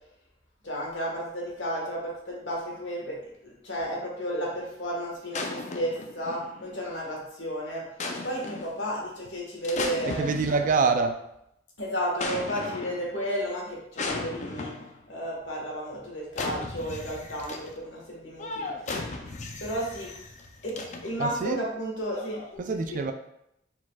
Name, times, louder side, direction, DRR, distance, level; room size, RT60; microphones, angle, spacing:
voice 1, 0.6-3.2 3.4-7.8 8.2-10.6 11.8-14.7 15.1-19.0 19.6-20.1 20.6-22.4 22.7-23.0, equal, 80° left, -3 dB, 1.4 m, -33 dB
sound 1, 5.3-6.8 8.0-8.8 9.6-11.0 12.2-13.2 14.0-15.0 16.3-17.8 18.4-21.3 22.1-22.6, left 3 dB, 40° left, 0.5 m, -36 dB
voice 2, 10.2-11.1 21.2-21.6 22.6-23.1, right 4 dB, 45° right, 7 dB, 0.4 m, -25 dB
4.9 x 4.0 x 2.3 m, 0.78 s
head